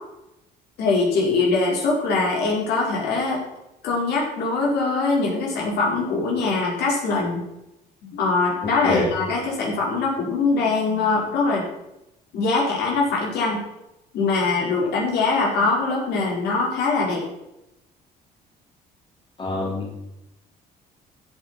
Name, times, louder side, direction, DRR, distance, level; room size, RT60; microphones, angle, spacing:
voice 1, 0.8-3.4 3.8-7.5 8.0-11.6 12.3-13.6 14.1-17.2, left 3 dB, 75° left, -2 dB, 4.8 m, -22 dB
voice 2, 19.4-20.0, left 2 dB, 30° left, -1 dB, 3.2 m, -26 dB
15.5 x 8.4 x 4.5 m, 0.88 s
cardioid pair, 110°, 17 cm